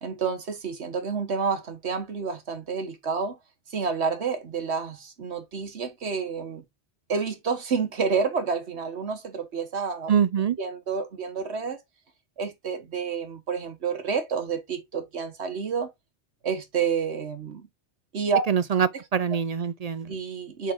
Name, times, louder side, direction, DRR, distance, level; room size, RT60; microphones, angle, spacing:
voice 1, 0.0-3.4 3.7-6.6 7.1-10.1 10.6-11.8 12.4-15.9 16.4-17.7 18.1-18.4 20.1-20.7, right 5 dB, 75° right, 1.5 m, -29 dB
voice 2, 10.1-10.6 18.5-20.1, right 8 dB, 55° right, 0.4 m, -24 dB
7.4 x 3.8 x 3.6 m
omnidirectional pair, 1.1 m